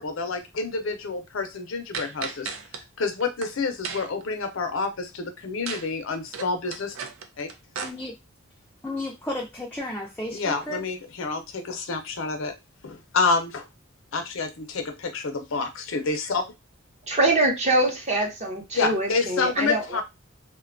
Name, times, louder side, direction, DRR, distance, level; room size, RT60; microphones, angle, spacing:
voice 1, 0.0-2.5 2.7-6.9 7.4-7.5 10.3-12.5 12.8-13.7 14.1-16.4 18.7-20.0, left 4 dB, 65° left, 0.5 m, -28 dB
sound 1, 1.9-2.8 3.2-3.5 3.8-4.2 5.7-5.9 6.1-7.9, right 5 dB, 75° right, 0.5 m, -34 dB
voice 2, 7.8-8.1 8.8-10.9, left 1 dB, 5° left, 0.4 m, -33 dB
voice 3, 17.1-20.0, right 2 dB, 30° right, 0.7 m, -24 dB
2.5 x 2.2 x 2.5 m
head